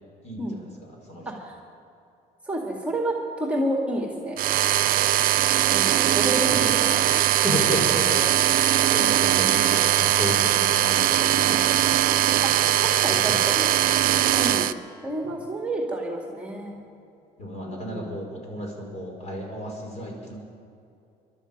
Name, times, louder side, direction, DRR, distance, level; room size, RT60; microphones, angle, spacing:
voice 1, 1.3-1.6 2.5-4.4 5.6-7.2 7.7-8.1 11.4-11.6 12.4-13.7 14.3-14.7 15.0-16.8 17.6-18.2, right 1 dB, 5° right, 0 dB, 2.1 m, -30 dB
sound 1, 4.4-14.7, right 12 dB, 60° right, 0.5 m, -21 dB
voice 2, 7.4-8.2 8.9-14.2 17.4-20.3, equal, 40° left, 0 dB, 5.0 m, -33 dB
22.5 x 12.0 x 5.4 m, 2.6 s
cardioid pair, 110°, 17 cm